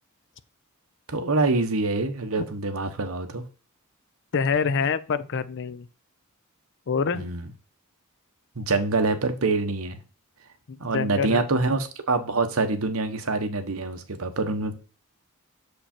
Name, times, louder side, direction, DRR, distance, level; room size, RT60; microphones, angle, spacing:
voice 1, 1.1-3.4 7.1-7.5 8.6-10.0 10.8-14.8, right 3 dB, 70° right, 1.0 m, -25 dB
voice 2, 4.3-5.9 6.9-7.3 10.7-11.5, left 5 dB, 55° left, 0.5 m, -26 dB
6.9 x 5.0 x 4.4 m
head